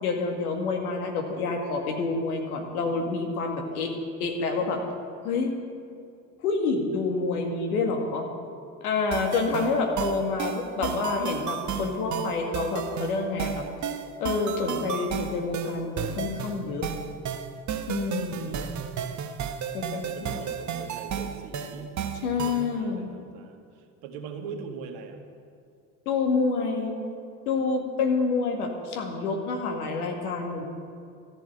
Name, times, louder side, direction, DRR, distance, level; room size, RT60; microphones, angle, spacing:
voice 1, 0.0-4.8 5.2-5.5 6.4-8.3 8.8-13.7 14.2-16.9 17.9-18.7 19.7-20.4 22.2-23.1 26.1-27.0 27.5-30.6, left 4 dB, 80° left, 3 dB, 2.1 m, -28 dB
sound 1, 9.1-22.7, right 8 dB, 40° right, 1.1 m, -33 dB
voice 2, 9.1-9.7 18.2-18.9 20.0-21.9 22.2-25.2, right 5 dB, 65° right, 4 dB, 1.9 m, -42 dB
14.0 x 7.6 x 9.7 m, 2.4 s
hypercardioid pair, 60°, 44 cm